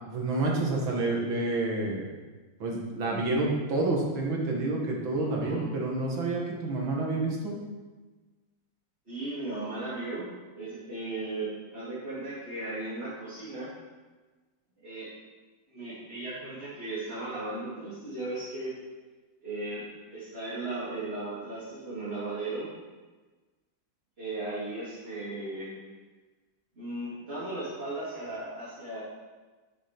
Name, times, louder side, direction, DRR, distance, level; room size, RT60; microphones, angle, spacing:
voice 1, 0.1-2.0 2.6-7.6, right 2 dB, 80° right, -1 dB, 2.6 m, -29 dB
voice 2, 5.2-5.6 9.1-13.7 14.8-15.1 15.7-18.7 19.4-22.7 24.2-25.7 26.7-29.0, right 2 dB, 30° right, -10 dB, 3.3 m, -36 dB
11.5 x 7.2 x 5.3 m, 1.3 s
omnidirectional pair, 2.1 m